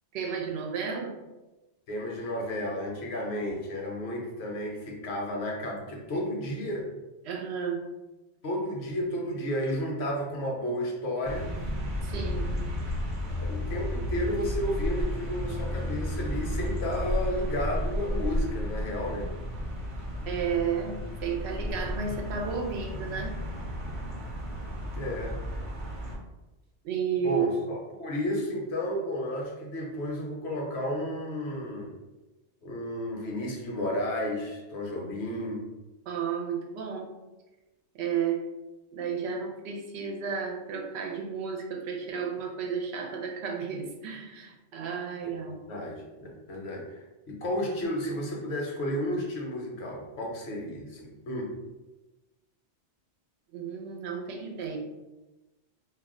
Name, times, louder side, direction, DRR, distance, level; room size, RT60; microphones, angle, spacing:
voice 1, 0.1-1.2 7.2-7.8 12.0-12.5 20.3-23.4 26.8-27.8 36.1-37.1 37.9-38.5 38.9-45.6 53.5-54.8, right 6 dB, 75° right, 1 dB, 0.8 m, -32 dB
voice 2, 1.9-6.9 8.4-11.5 13.4-19.3 24.9-25.4 27.2-31.9 32.6-35.6 45.2-45.3 45.7-51.5, left 1 dB, 70° left, 0 dB, 0.9 m, -32 dB
sound 1, 11.2-26.2, equal, 35° right, 0.6 m, -33 dB
2.3 x 2.1 x 3.6 m, 1.1 s
omnidirectional pair, 1.1 m